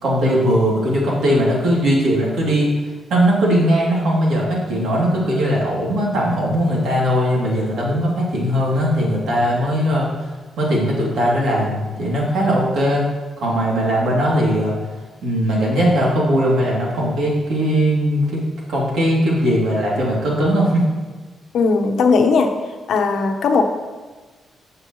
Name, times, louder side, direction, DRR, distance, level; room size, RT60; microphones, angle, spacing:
voice 1, 0.0-2.7 3.1-10.1 10.6-13.1 13.4-14.7 15.2-18.4 18.7-20.8, equal, 70° right, -4 dB, 2.8 m, -19 dB
voice 2, 21.5-22.5 22.9-23.6, left 4 dB, 65° left, 4 dB, 0.9 m, -17 dB
15.5 x 6.6 x 3.1 m, 1.3 s
wide cardioid pair, 175°, 0 cm